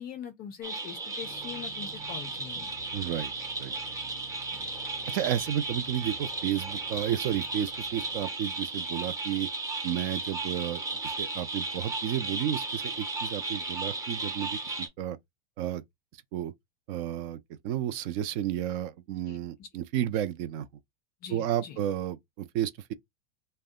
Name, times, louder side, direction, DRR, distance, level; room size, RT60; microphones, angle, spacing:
voice 1, 0.0-2.7 4.5-4.7 19.2-19.7 21.2-21.8, left 9 dB, 25° left, 0.4 m, -43 dB
sound 1, 0.6-14.9, right 3 dB, 10° right, 0.7 m, -35 dB
sound 2, 1.2-8.3, right 6 dB, 80° right, 1.0 m, -52 dB
voice 2, 2.9-3.3 3.6-3.7 5.1-9.5 9.8-15.2 15.6-15.8 16.3-16.5 16.9-17.4 17.6-20.7 21.3-22.2 22.5-22.9, right 11 dB, 45° right, 0.5 m, -32 dB
2.6 x 2.1 x 3.6 m
supercardioid pair, 135°, 37 cm